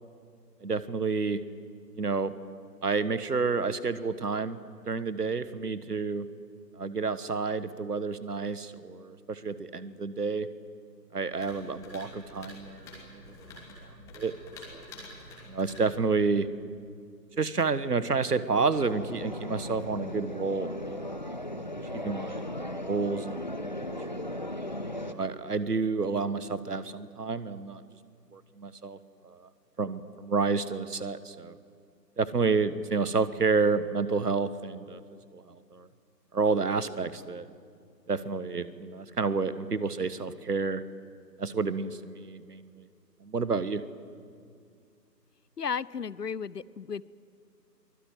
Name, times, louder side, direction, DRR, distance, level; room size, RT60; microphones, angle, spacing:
voice 1, 0.6-1.4 1.9-2.3 2.8-4.6 4.9-6.3 6.8-10.5 11.1-13.4 14.0-14.3 14.7-14.8 15.5-16.5 17.4-21.6 21.9-24.4 25.0-27.8 28.3-29.0 29.2-29.5 29.8-31.6 32.2-35.0 35.3-35.9 36.3-37.5 38.1-40.8 41.4-42.9 43.2-43.8, right 4 dB, 65° right, 15 dB, 1.4 m, -30 dB
sound 1, 11.3-16.5, left 1 dB, 5° left, 2.8 m, -48 dB
sound 2, 18.7-25.1, left 1 dB, 30° left, 0.7 m, -37 dB
voice 2, 45.6-47.0, left 6 dB, 70° left, 21 dB, 0.8 m, -34 dB
23.5 x 20.0 x 9.2 m, 2.2 s
figure-of-eight pair, 150°, 50 cm